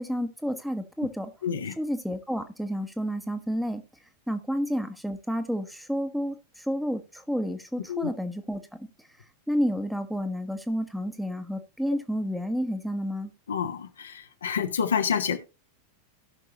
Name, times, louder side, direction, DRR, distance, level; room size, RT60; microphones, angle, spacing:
voice 1, 0.0-1.3 1.8-3.8 4.3-8.9 9.5-13.3, equal, ahead, 1.2 m, -30 dB
voice 2, 1.4-1.8 7.9-8.1 13.5-15.4, left 7 dB, 70° left, 1.2 m, -28 dB
17.5 x 6.0 x 2.9 m
figure-of-eight pair, 90°, 0 cm